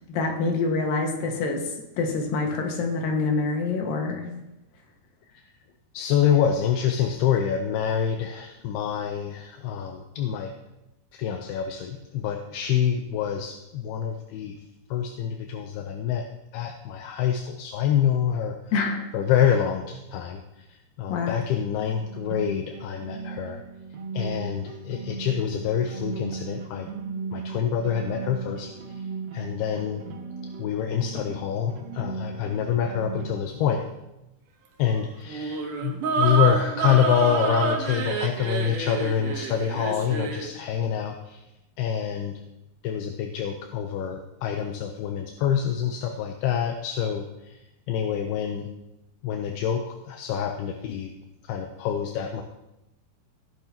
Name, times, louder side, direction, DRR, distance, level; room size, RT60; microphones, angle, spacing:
voice 1, 0.1-4.3 18.7-19.0 21.1-21.4, left 3 dB, 65° left, 1 dB, 3.2 m, -26 dB
voice 2, 5.9-10.5 11.1-14.6 14.9-16.3 16.5-18.6 19.1-23.6 24.1-26.9 27.3-29.1 29.3-30.0 30.6-33.8 34.8-41.5 41.8-42.3 42.8-47.6 47.9-48.7 49.2-51.1 51.4-52.4, left 8 dB, 80° left, 4 dB, 2.7 m, -26 dB
sound 1, 22.0-33.4, right 5 dB, 85° right, 1.5 m, -37 dB
sound 2, 35.3-40.5, right 4 dB, 65° right, 2.4 m, -28 dB
17.0 x 10.5 x 2.9 m, 0.93 s
omnidirectional pair, 4.6 m